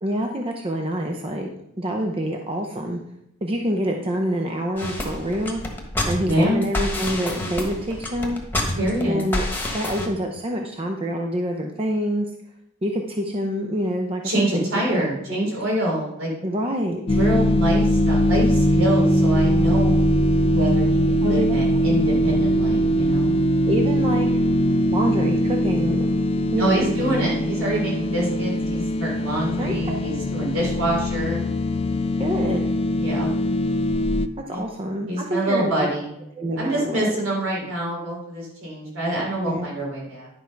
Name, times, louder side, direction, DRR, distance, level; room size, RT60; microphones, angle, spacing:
voice 1, 0.0-1.5 1.8-3.0 3.4-5.6 6.1-8.4 9.0-12.3 12.8-15.5 16.4-17.0 21.2-22.0 23.7-24.3 24.9-26.1 26.5-26.9 29.6-30.0 32.2-32.7 34.5-35.9 36.4-37.1 39.4-39.7, equal, 25° right, 2 dB, 0.6 m, -26 dB
sound 1, 4.8-10.1, left 1 dB, 10° left, 1.3 m, -28 dB
voice 2, 6.2-6.6 8.8-9.3 14.2-16.3 17.1-20.0 20.5-23.3 26.6-31.4 33.0-33.3 34.5-34.6 35.1-36.1 36.6-40.3, right 1 dB, 70° right, -3 dB, 4.2 m, -26 dB
sound 2, 17.1-34.3, equal, 25° left, 0.3 m, -21 dB
11.0 x 4.6 x 5.7 m, 0.80 s
head